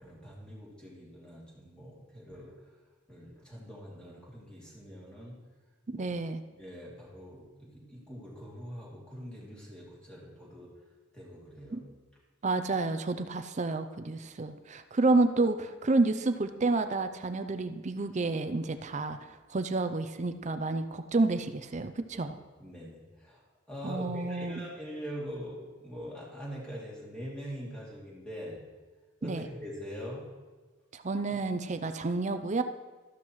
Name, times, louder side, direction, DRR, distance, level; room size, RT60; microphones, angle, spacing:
voice 1, 0.0-2.7 3.1-5.4 5.9-6.1 6.6-10.7 11.1-11.8 22.2-22.3 22.6-28.6 29.2-30.3, equal, 5° left, -6 dB, 2.7 m, -43 dB
voice 2, 5.9-6.4 11.7-11.8 12.4-19.2 19.5-22.4 23.8-24.7 29.2-29.4 30.9-32.6, right 3 dB, 35° right, 10 dB, 0.5 m, -29 dB
13.5 x 11.5 x 3.1 m, 1.4 s
head